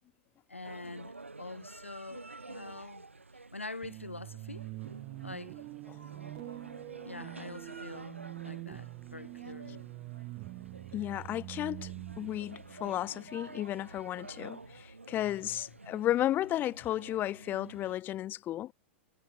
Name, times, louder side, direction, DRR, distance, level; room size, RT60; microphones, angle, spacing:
voice 1, 0.5-3.1 3.5-4.7 5.2-5.5 7.0-9.9, left 3 dB, 85° left, 2.3 m, -45 dB
sound 1, 0.6-18.0, right 3 dB, 85° right, 3.3 m, -50 dB
sound 2, 3.8-13.7, right 21 dB, 35° right, 3.3 m, -45 dB
voice 2, 10.9-11.9 12.2-18.7, left 13 dB, 30° left, 3.2 m, -33 dB
figure-of-eight pair, 100°, 7 cm